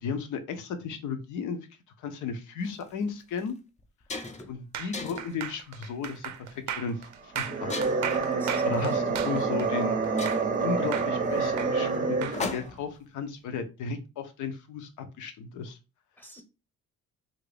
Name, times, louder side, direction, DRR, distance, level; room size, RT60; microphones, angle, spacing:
voice 1, 0.0-1.7 2.0-3.6 4.5-6.5 6.8-7.0 7.2-7.8 8.6-10.0 10.6-15.8, left 5 dB, 75° left, 8 dB, 0.7 m, -35 dB
sound 1, 2.6-2.8 3.4-3.5 3.8-4.5 4.9-5.4 6.0-6.3 7.7-8.2 9.4-9.5 9.8-9.9 10.2-13.0, left 3 dB, 25° left, 0.5 m, -38 dB
sound 2, 4.7-10.6 10.9-12.4, right 9 dB, 70° right, 0.5 m, -36 dB
sound 3, 7.3-12.7, right 4 dB, 25° right, 0.6 m, -27 dB
voice 2, 8.1-9.0 16.2-16.4, equal, 5° left, 4 dB, 0.9 m, -48 dB
2.8 x 2.6 x 3.2 m, 0.29 s
cardioid pair, 90°, 30 cm